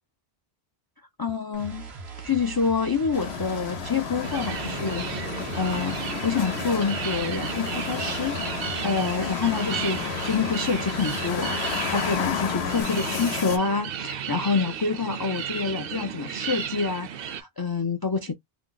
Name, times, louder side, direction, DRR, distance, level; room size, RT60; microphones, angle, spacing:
voice 1, 1.2-1.9 2.2-6.0 6.2-8.4 8.8-18.3, left 5 dB, 35° left, 0.3 m, -27 dB
sound 1, 1.5-12.8, right 4 dB, 85° right, 1.2 m, -40 dB
sound 2, 3.1-13.6, left 8 dB, 85° left, 0.9 m, -32 dB
sound 3, 4.2-17.4, right 9 dB, 65° right, 0.7 m, -34 dB
2.8 x 2.0 x 3.8 m
omnidirectional pair, 1.1 m